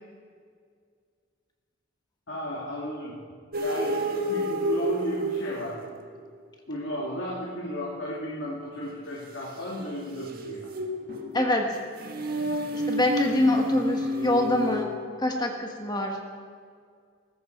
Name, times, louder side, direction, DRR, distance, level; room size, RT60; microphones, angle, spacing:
voice 1, 2.3-3.2 3.6-5.8 6.7-10.7, equal, 70° left, -4 dB, 2.5 m, -34 dB
sound 1, 3.5-6.2 9.6-14.8, equal, 50° right, 1.6 m, -30 dB
voice 2, 11.3-11.8 12.7-16.2, left 1 dB, 20° left, 2 dB, 1.4 m, -25 dB
19.0 x 15.0 x 4.6 m, 2.1 s
head